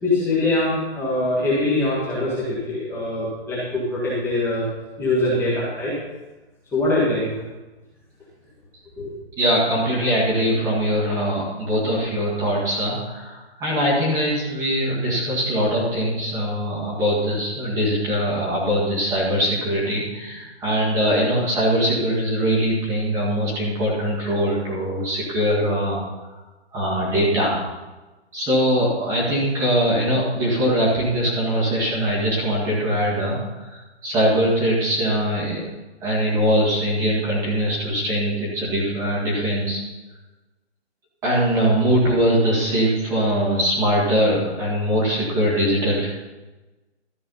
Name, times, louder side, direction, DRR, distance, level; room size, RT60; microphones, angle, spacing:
voice 1, 0.0-4.7 5.0-5.9 6.7-7.3 9.0-9.1, left 2 dB, 5° left, -8 dB, 1.7 m, -23 dB
voice 2, 9.4-26.0 26.7-27.7 28.3-35.6 36.0-39.8 41.2-46.1, equal, 10° right, -5 dB, 1.8 m, -22 dB
13.0 x 4.8 x 5.5 m, 1.1 s
hypercardioid pair, 160°, 33 cm